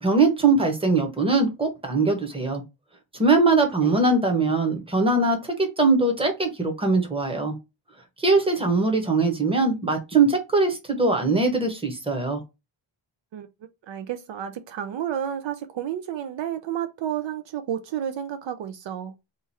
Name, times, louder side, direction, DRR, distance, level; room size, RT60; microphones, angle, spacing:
voice 1, 0.0-2.6 3.2-7.5 8.2-12.4, right 3 dB, 10° right, 0.9 m, -21 dB
voice 2, 13.9-19.1, right 10 dB, 70° right, 0.5 m, -31 dB
3.0 x 2.4 x 4.0 m
wide cardioid pair, 130°, 47 cm